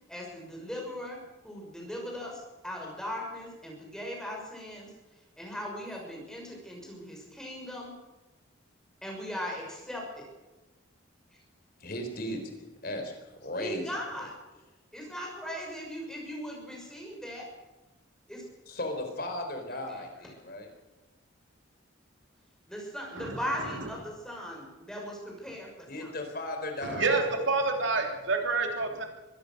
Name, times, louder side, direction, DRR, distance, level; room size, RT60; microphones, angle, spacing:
voice 1, 0.1-7.9 9.0-10.3 11.3-11.4 13.6-14.3 14.9-17.5 18.3-18.4 22.7-26.2, equal, 5° left, -1 dB, 6.1 m, -39 dB
voice 2, 11.8-13.8 18.7-20.7 25.9-27.2, left 1 dB, 45° left, 4 dB, 3.9 m, -36 dB
voice 3, 26.8-29.0, right 3 dB, 65° right, 3 dB, 3.2 m, -28 dB
23.5 x 17.0 x 6.6 m, 1.1 s
head